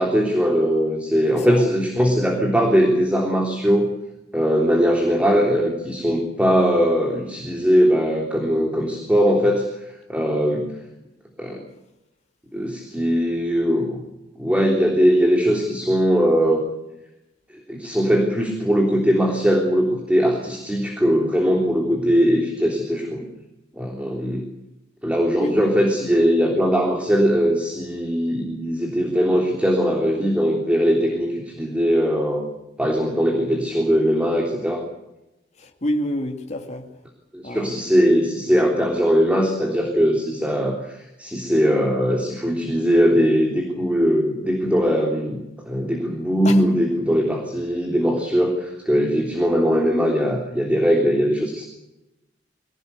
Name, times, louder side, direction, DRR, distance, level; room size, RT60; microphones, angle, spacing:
voice 1, 0.0-3.9 4.3-9.7 10.1-10.7 11.4-11.6 12.5-14.0 14.4-16.6 17.7-23.3 23.8-24.4 25.0-32.4 32.8-34.8 37.3-45.4 45.7-51.6, equal, 5° right, 3.4 m, -20 dB
voice 2, 1.3-1.6 25.4-25.6 35.6-36.9 37.4-37.8 46.4-46.7, left 1 dB, 40° left, 2.5 m, -28 dB
23.5 x 18.0 x 8.3 m
head